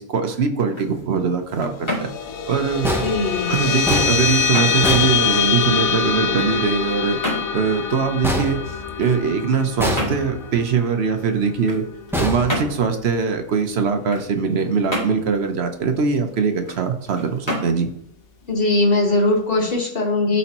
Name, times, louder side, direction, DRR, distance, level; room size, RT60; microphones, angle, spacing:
voice 1, 0.0-2.1 2.5-2.9 3.5-7.2 7.5-8.6 9.0-11.8 12.2-17.9, right 5 dB, 55° right, 6 dB, 0.9 m, -22 dB
sound 1, 0.5-19.4, equal, 20° left, 1.9 m, -34 dB
sound 2, 1.8-12.6, left 7 dB, 75° left, 1.1 m, -24 dB
sound 3, 2.8-5.9 8.2-9.3 9.8-10.6 12.1-13.2, equal, 5° right, 0.5 m, -27 dB
voice 2, 3.0-3.5 18.5-20.4, left 2 dB, 40° left, 0 dB, 1.6 m, -20 dB
12.5 x 4.2 x 3.0 m, 0.71 s
omnidirectional pair, 1.5 m